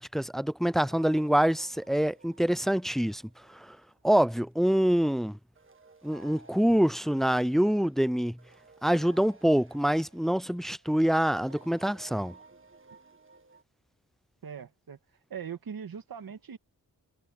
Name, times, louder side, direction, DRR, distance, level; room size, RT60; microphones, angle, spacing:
voice 1, 0.0-3.2 3.5-3.8 4.0-5.4 6.0-8.4 8.8-12.3, equal, ahead, 0.3 m, -25 dB
sound 1, 0.8-4.4 5.5-13.6, right 3 dB, 35° right, 1.7 m, -56 dB
voice 2, 14.4-15.0 15.3-16.6, right 7 dB, 70° right, 2.3 m, -40 dB
cardioid pair, 75°, 37 cm